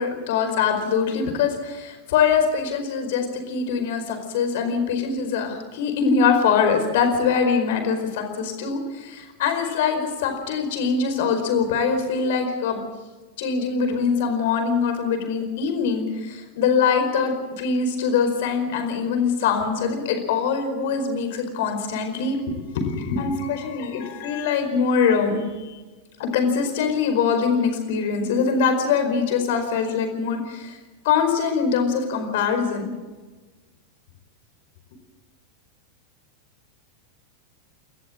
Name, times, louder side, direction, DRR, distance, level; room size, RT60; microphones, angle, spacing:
voice 1, 0.0-12.8 13.4-25.8 26.2-30.8 31.0-32.9, left 6 dB, 55° left, 6 dB, 4.8 m, -23 dB
29.0 x 14.0 x 7.7 m, 1.3 s
figure-of-eight pair, 90°, 0 cm